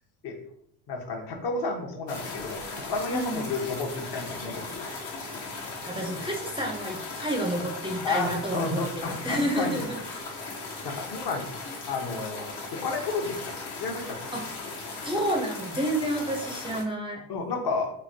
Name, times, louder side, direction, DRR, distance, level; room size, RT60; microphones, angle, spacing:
voice 1, 0.9-4.8 8.0-9.8 10.8-11.5 11.9-14.3 17.3-17.9, left 3 dB, 55° left, 3 dB, 0.8 m, -32 dB
sound 1, 2.1-16.8, left 3 dB, 75° left, 1.2 m, -38 dB
voice 2, 3.1-3.5 5.9-10.0 14.3-14.5 15.0-17.2, right 1 dB, 10° right, 0 dB, 0.4 m, -30 dB
3.2 x 2.3 x 2.6 m, 0.71 s
supercardioid pair, 80°, 46 cm